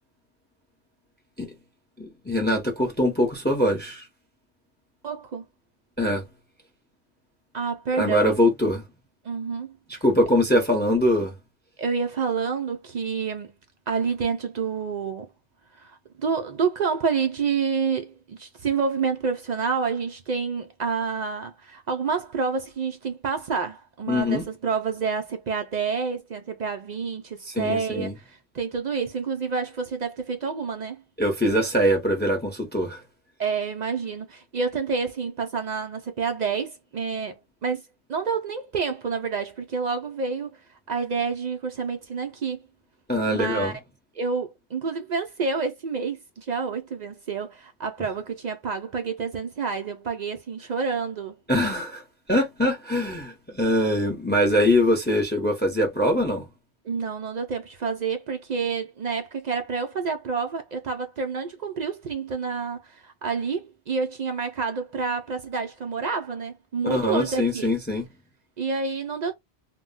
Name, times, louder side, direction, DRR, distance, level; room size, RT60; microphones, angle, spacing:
voice 1, 2.0-4.0 6.0-6.2 7.9-8.8 9.9-11.3 24.1-24.5 27.4-28.1 31.2-33.0 43.1-43.7 51.5-52.0 52.3-56.5 66.9-68.0, left 1 dB, 10° left, 0.6 m, -23 dB
voice 2, 5.0-5.4 7.5-8.3 9.2-10.0 11.8-13.5 13.9-15.3 15.8-31.0 33.4-37.8 38.1-40.6 40.9-42.6 43.3-43.7 44.2-51.4 56.8-67.7 68.6-69.3, right 5 dB, 60° right, 0.5 m, -28 dB
2.2 x 2.1 x 3.7 m
omnidirectional pair, 1.1 m